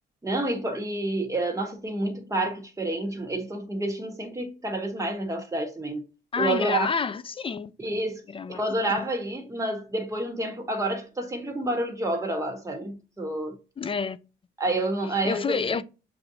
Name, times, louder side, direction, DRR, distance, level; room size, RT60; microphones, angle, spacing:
voice 1, 0.2-6.0 6.4-6.9 7.8-8.2 8.5-13.6 14.6-15.8, right 1 dB, 15° right, 1.4 m, -29 dB
voice 2, 6.3-7.7 8.3-8.6 9.0-9.1 13.8-14.2 15.3-15.8, left 5 dB, 25° left, 0.3 m, -28 dB
6.9 x 2.6 x 2.7 m
cardioid pair, 90°, 20 cm